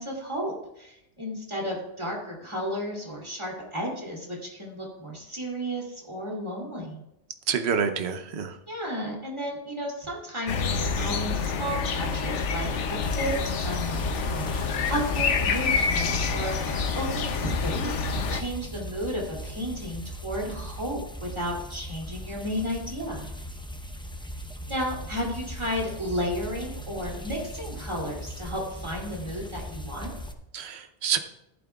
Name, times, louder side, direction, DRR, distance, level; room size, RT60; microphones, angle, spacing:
voice 1, 0.0-7.0 8.7-23.3 24.7-30.1, equal, 25° right, -2 dB, 3.0 m, -33 dB
voice 2, 7.5-8.5 30.5-31.2, right 7 dB, 70° right, 8 dB, 1.1 m, -27 dB
sound 1, 10.5-18.4, left 5 dB, 90° left, 1.1 m, -27 dB
sound 2, 13.0-30.3, equal, 5° left, 0.7 m, -39 dB
14.5 x 11.5 x 2.4 m, 0.84 s
omnidirectional pair, 1.2 m